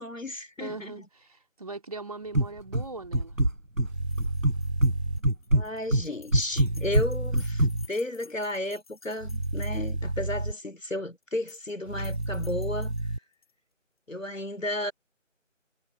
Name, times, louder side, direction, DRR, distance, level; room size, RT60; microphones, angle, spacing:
voice 1, 0.0-1.1 5.5-12.9 14.1-14.9, left 1 dB, 75° left, 4.1 m, -33 dB
voice 2, 0.6-3.4, right 3 dB, 30° right, 3.8 m, -40 dB
sound 1, 2.3-2.9 3.1-3.9 4.2-5.0 5.2-7.7, right 1 dB, 90° right, 4.8 m, -23 dB
sound 2, 3.9-5.2 6.5-7.9 9.2-10.5 11.9-13.2, right 2 dB, 55° right, 3.3 m, -31 dB
sound 3, 4.0-10.2 11.2-11.7 12.0-13.5, left 5 dB, 30° left, 7.0 m, -54 dB
figure-of-eight pair, 170°, 39 cm